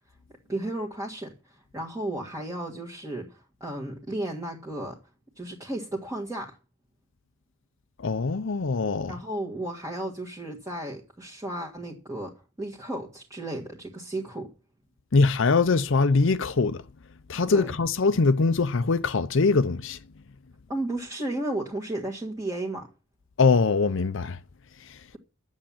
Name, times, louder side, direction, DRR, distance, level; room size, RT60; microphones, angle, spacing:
voice 1, 0.5-5.0 5.4-6.6 9.1-14.5 17.5-17.7 20.7-22.9, right 1 dB, 15° right, 1.7 m, -34 dB
voice 2, 8.0-9.2 15.1-16.8 17.3-20.0 23.4-24.4 24.8-25.0, left 4 dB, 65° left, 0.6 m, -23 dB
10.5 x 7.4 x 8.7 m
head